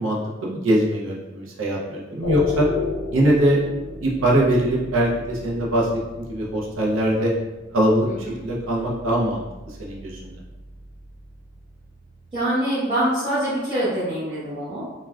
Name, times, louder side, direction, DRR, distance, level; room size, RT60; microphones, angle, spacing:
voice 1, 0.0-2.7 3.1-3.6 4.0-7.3 7.7-10.3, right 1 dB, 85° right, -3 dB, 0.5 m, -22 dB
sound 1, 2.2-12.4, left 4 dB, 70° left, 0.5 m, -34 dB
voice 2, 12.3-14.8, right 1 dB, 30° right, -14 dB, 0.8 m, -24 dB
3.4 x 2.1 x 2.3 m, 1.1 s
head